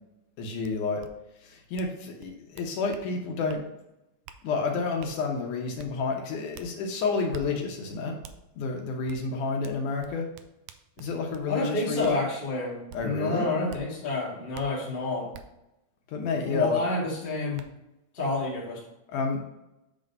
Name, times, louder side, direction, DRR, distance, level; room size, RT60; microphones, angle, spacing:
voice 1, 0.4-1.0 1.4-3.6 4.4-8.2 8.6-10.3 11.0-12.2 12.9-13.5 16.1-16.8 19.1-19.4, left 4 dB, 75° left, 1 dB, 2.4 m, -30 dB
sound 1, 0.6-0.7 1.0-1.1 1.8-1.9 2.2-3.1 3.5-3.6 4.3-4.4 5.0-5.1 5.8-5.9 6.5-6.7 7.3-7.5 8.2-8.4 9.1-9.2 9.6-11.5 12.0-12.2 12.9-13.0 13.7-13.8 14.5-14.7 15.3-15.4 16.9-17.0 17.6-17.7, right 8 dB, 85° right, 1.6 m, -46 dB
voice 2, 11.5-15.3 16.4-17.6 18.1-18.8, left 2 dB, 20° left, -5 dB, 1.6 m, -29 dB
8.5 x 3.8 x 5.3 m, 0.91 s
omnidirectional pair, 3.7 m